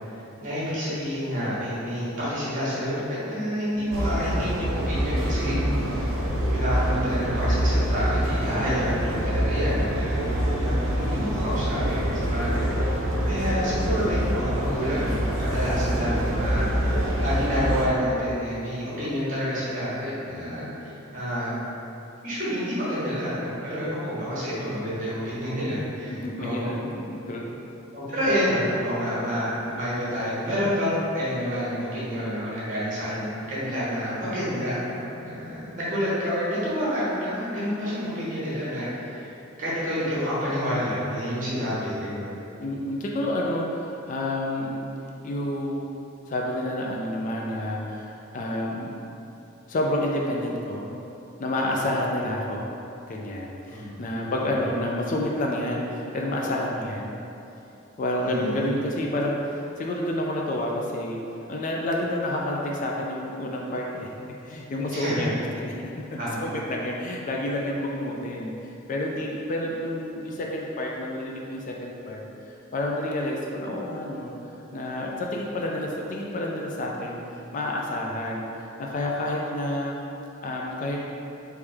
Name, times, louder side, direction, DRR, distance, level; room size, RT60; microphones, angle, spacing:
voice 1, 0.4-5.6 6.5-9.9 10.6-16.7 17.2-21.6 22.2-26.7 27.9-39.3 39.6-42.3 53.7-53.9 54.3-54.6 58.2-58.7 64.9-65.3 66.2-66.3, equal, 40° right, -8 dB, 1.2 m, -28 dB
sound 1, 3.9-17.9, equal, 85° right, 0.5 m, -25 dB
voice 2, 5.4-6.0 9.7-10.7 26.1-27.6 42.6-44.8 45.2-45.9 46.3-48.9 49.7-50.9 51.4-52.7 53.1-57.2 58.0-61.2 61.5-64.1 64.4-65.3 65.5-72.2 72.5-74.3 74.7-77.2 77.5-78.5 78.8-79.9 80.4-81.1, left 1 dB, 40° left, -1 dB, 0.3 m, -29 dB
3.3 x 3.1 x 3.4 m, 2.9 s
head